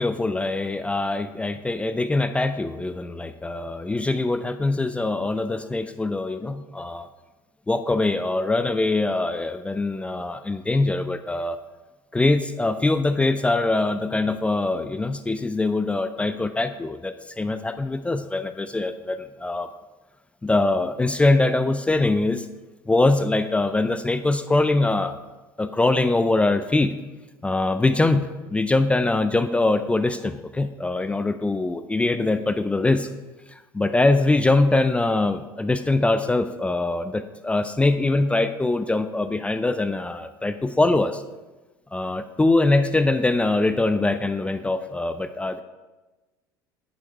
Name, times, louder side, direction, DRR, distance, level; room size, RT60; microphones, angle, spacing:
voice 1, 0.0-7.1 7.7-11.6 12.1-19.7 20.4-22.5 22.9-25.2 25.6-26.9 27.4-33.1 33.7-41.2 41.9-45.6, left 2 dB, 10° left, 10 dB, 0.5 m, -23 dB
9.7 x 7.1 x 4.6 m, 1.2 s
figure-of-eight pair, 65°, 11 cm